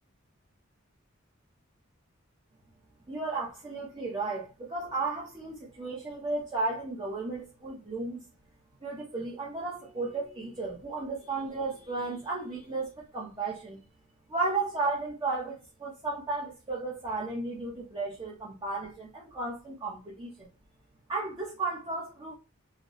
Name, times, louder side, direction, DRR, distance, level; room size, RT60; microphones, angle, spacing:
voice 1, 3.1-8.2 8.8-13.8 14.3-20.5 21.1-22.3, right 3 dB, 25° right, 0.8 m, -34 dB
4.0 x 2.1 x 3.0 m
head